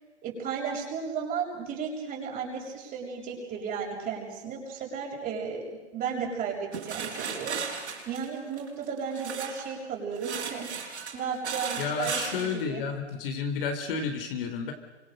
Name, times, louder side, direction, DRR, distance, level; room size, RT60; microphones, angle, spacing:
voice 1, 0.2-5.6 5.9-12.8, right 6 dB, 25° right, -1 dB, 7.0 m, -34 dB
sound 1, 6.7-9.7 10.2-12.5, right 6 dB, 75° right, 6.4 m, -35 dB
voice 2, 11.8-14.7, left 5 dB, 50° left, 5 dB, 4.2 m, -31 dB
28.5 x 25.5 x 6.7 m, 1.1 s
hypercardioid pair, 130°, 34 cm